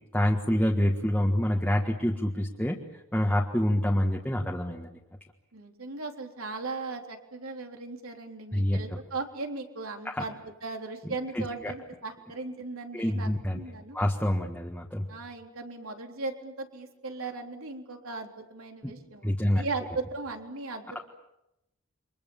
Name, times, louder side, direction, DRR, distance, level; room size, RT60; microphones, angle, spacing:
voice 1, 0.1-2.8 3.1-4.9 8.5-8.8 10.1-10.2 11.3-11.7 12.9-13.6 13.9-15.0 19.2-19.6, equal, 5° left, -1 dB, 1.6 m, -26 dB
voice 2, 5.5-14.0 15.1-21.0, right 3 dB, 85° right, 3 dB, 3.7 m, -37 dB
29.0 x 25.0 x 7.2 m, 0.88 s
head